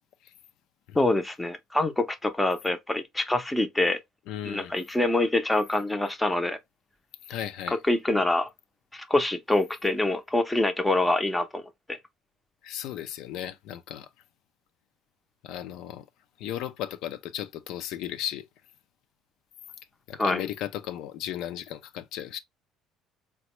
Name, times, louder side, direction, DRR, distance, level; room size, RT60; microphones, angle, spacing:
voice 1, 1.0-4.0 4.4-6.6 7.7-8.5 8.9-11.6 11.9-12.0 20.2-20.5, left 2 dB, 5° left, 0.5 m, -25 dB
voice 2, 4.3-4.7 7.2-7.8 12.6-14.1 15.4-16.1 16.4-18.4 20.1-22.4, left 11 dB, 70° left, 0.4 m, -35 dB
4.0 x 2.1 x 2.9 m
cardioid pair, 135°, 0 cm